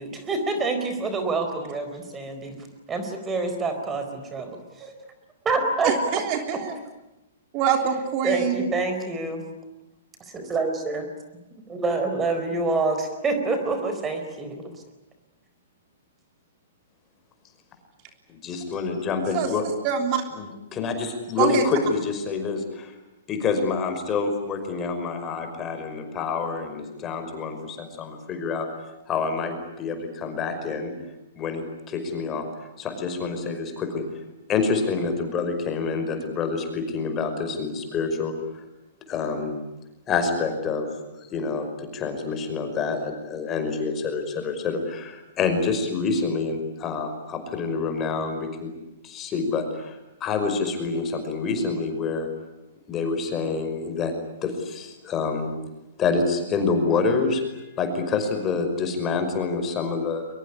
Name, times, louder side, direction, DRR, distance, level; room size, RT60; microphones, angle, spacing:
voice 1, 0.0-2.6 2.9-4.9 5.4-5.9 6.5-6.6 8.2-9.4 10.2-11.1 11.7-14.8, right 3 dB, 20° right, 7 dB, 4.4 m, -27 dB
voice 2, 5.8-6.7 7.5-8.7 19.3-19.5 19.8-20.2 21.4-21.6, right 8 dB, 40° right, 5 dB, 3.3 m, -24 dB
voice 3, 18.3-19.6 20.3-22.9 23.3-28.7 29.1-30.9 31.4-32.4 32.8-34.0 34.5-38.3 39.1-39.5 40.1-40.9 41.2-48.7 49.0-52.3 52.9-54.1 54.4-55.5 56.0-60.2, left 4 dB, 25° left, 7 dB, 5.5 m, -27 dB
23.0 x 22.0 x 9.9 m, 0.98 s
hypercardioid pair, 125°, 0 cm